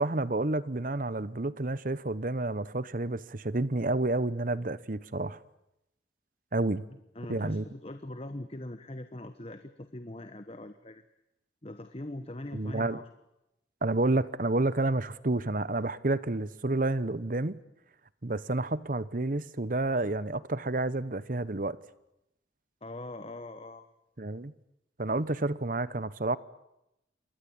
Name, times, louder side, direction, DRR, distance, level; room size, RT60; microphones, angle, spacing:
voice 1, 0.0-5.4 6.5-6.8 7.3-7.6 12.5-13.0 13.8-17.6 18.2-21.8 24.2-24.5 25.0-26.4, right 2 dB, 45° right, 17 dB, 1.0 m, -30 dB
voice 2, 7.1-11.0 11.6-13.1 22.8-23.9, left 1 dB, 30° left, 9 dB, 1.1 m, -42 dB
28.0 x 23.0 x 8.7 m, 0.86 s
head